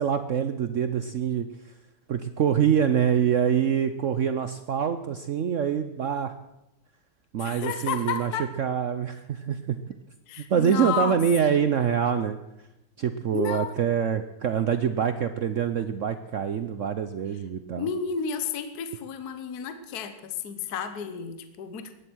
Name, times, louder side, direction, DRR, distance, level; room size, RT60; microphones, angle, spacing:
voice 1, 0.0-1.5 2.1-6.3 7.3-8.3 8.6-9.8 10.5-12.4 13.0-17.9, right 8 dB, 80° right, 10 dB, 0.6 m, -25 dB
voice 2, 7.4-8.5 10.3-11.2 13.3-13.7 17.8-21.9, left 7 dB, 55° left, 10 dB, 1.5 m, -31 dB
16.5 x 11.0 x 6.2 m, 0.90 s
omnidirectional pair, 2.2 m